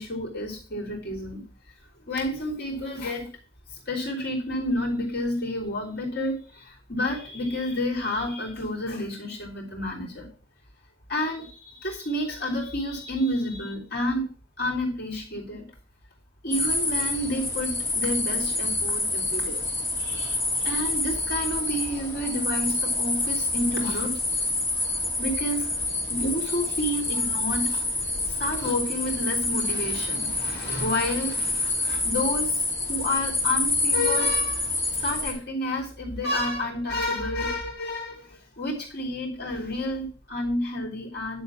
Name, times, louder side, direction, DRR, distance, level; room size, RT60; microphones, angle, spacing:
voice 1, 0.0-1.4 2.1-3.3 3.7-10.3 11.1-14.3 14.6-15.7 16.4-19.7 20.0-24.2 25.2-25.7 26.1-27.9 28.3-34.7 35.0-41.4, left 1 dB, 60° left, -3 dB, 3.4 m, -30 dB
sound 1, 16.5-35.3, left 2 dB, 10° left, 2.1 m, -27 dB
10.5 x 3.9 x 6.0 m, 0.39 s
head